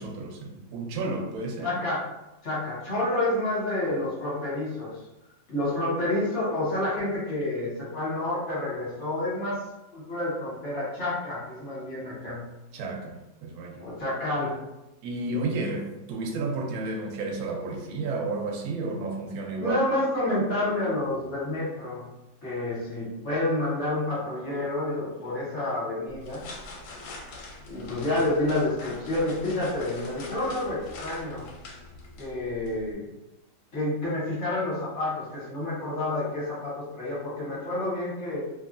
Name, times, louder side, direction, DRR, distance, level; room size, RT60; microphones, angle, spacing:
voice 1, 0.0-1.8 12.7-13.8 15.0-19.8, right 3 dB, 75° right, 1 dB, 0.9 m, -32 dB
voice 2, 1.6-2.0 2.4-4.9 5.5-9.6 9.9-12.4 13.8-14.6 19.6-22.0 22.4-26.4 27.7-31.5 32.2-33.1 33.7-38.4, left 1 dB, 45° left, -7 dB, 1.2 m, -29 dB
sound 1, 26.1-32.9, left 2 dB, 75° left, 1.2 m, -43 dB
2.9 x 2.4 x 2.5 m, 0.94 s
omnidirectional pair, 2.0 m